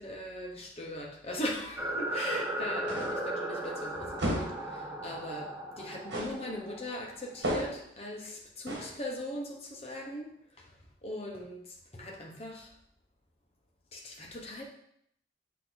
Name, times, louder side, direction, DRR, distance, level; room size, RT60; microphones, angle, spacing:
voice 1, 0.0-10.3 10.6-10.7 11.0-12.7 13.9-14.6, left 1 dB, 35° left, -1 dB, 1.0 m, -39 dB
sound 1, 1.8-7.7, right 1 dB, 10° right, 0.6 m, -36 dB
sound 2, 2.9-3.3 4.2-4.7 6.1-6.5 7.4-7.9 8.7-9.0, right 1 dB, 70° right, 1.6 m, -33 dB
8.1 x 3.0 x 3.9 m, 0.72 s
head